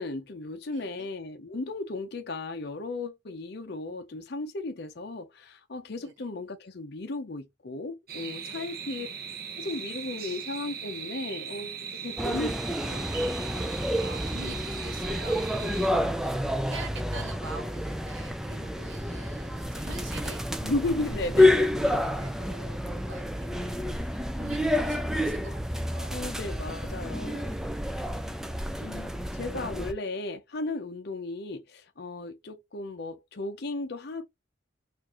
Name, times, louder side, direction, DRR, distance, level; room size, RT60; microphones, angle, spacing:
voice 1, 0.0-9.1 9.6-12.5 12.8-13.1 20.6-21.7 26.1-27.6 28.8-34.2, left 2 dB, 55° left, 0.6 m, -35 dB
voice 2, 0.7-1.1 6.0-6.2 8.5-8.7 12.0-12.3 13.9-20.5 21.8-26.3 26.8-26.9 27.3-27.6, right 3 dB, 75° right, 1.0 m, -46 dB
sound 1, 8.1-15.9, right 7 dB, 50° right, 0.6 m, -39 dB
sound 2, 12.2-29.9, left 1 dB, 5° right, 0.3 m, -29 dB
4.5 x 2.5 x 2.9 m
head